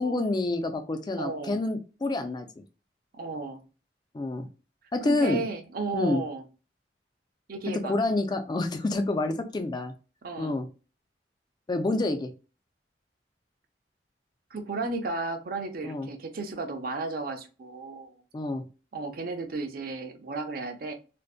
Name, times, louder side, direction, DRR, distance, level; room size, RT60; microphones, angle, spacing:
voice 1, 0.0-2.5 4.1-4.5 4.9-5.4 5.9-6.2 7.8-9.9 10.4-10.7 11.7-12.3 15.8-16.1 18.3-18.6, left 2 dB, 25° left, 7 dB, 0.3 m, -28 dB
voice 2, 1.2-1.6 3.1-3.6 5.0-6.4 7.5-8.0 10.2-10.6 14.5-18.1 18.9-20.9, right 3 dB, 55° right, 6 dB, 0.5 m, -34 dB
2.5 x 2.1 x 2.3 m, 0.33 s
head